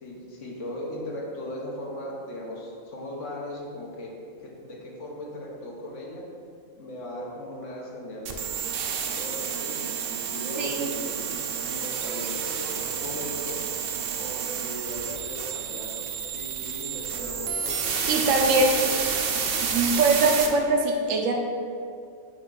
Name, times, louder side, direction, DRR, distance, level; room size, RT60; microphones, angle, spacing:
voice 1, 0.0-6.3 6.8-8.4 8.9-13.6 14.2-18.9 19.2-19.3, left 1 dB, 70° left, -2 dB, 1.4 m, -38 dB
sound 1, 8.3-20.5, right 6 dB, 55° right, 0.7 m, -30 dB
voice 2, 10.6-10.9 18.1-18.8 19.6-21.4, right 3 dB, 75° right, 2 dB, 1.1 m, -22 dB
5.7 x 5.3 x 3.9 m, 2.3 s
omnidirectional pair, 1.4 m